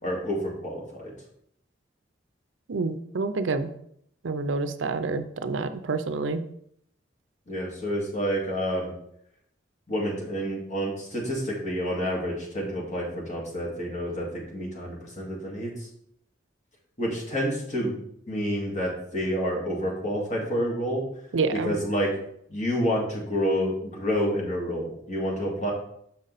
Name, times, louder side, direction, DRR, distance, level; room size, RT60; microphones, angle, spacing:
voice 1, 0.0-1.1 7.5-8.9 9.9-15.9 17.0-18.0 18.3-21.0 21.5-22.2 22.5-25.7, equal, 40° left, -3 dB, 2.1 m, -29 dB
voice 2, 2.7-3.7 4.2-6.4 21.3-21.7, right 3 dB, 90° right, 11 dB, 0.5 m, -28 dB
6.8 x 5.4 x 4.0 m, 0.70 s
head